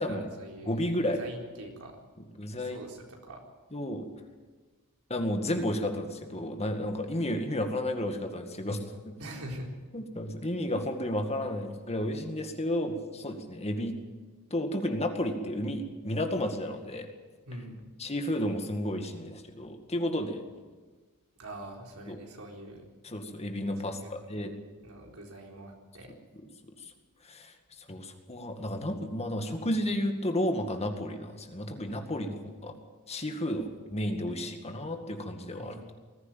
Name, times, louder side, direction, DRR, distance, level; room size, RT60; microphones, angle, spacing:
voice 1, 0.1-2.0 2.6-3.4 9.2-9.7 17.5-17.9 21.4-22.9 23.9-24.1 24.8-26.1 35.6-35.9, right 1 dB, 75° right, 0 dB, 4.1 m, -44 dB
voice 2, 0.6-1.2 2.4-2.8 3.7-4.1 5.1-8.8 9.9-13.9 14.5-17.1 18.0-20.4 22.1-22.2 23.1-24.5 27.2-27.5 27.9-32.7 33.1-35.8, left 1 dB, 30° left, 5 dB, 2.0 m, -32 dB
20.5 x 15.0 x 9.2 m, 1.4 s
head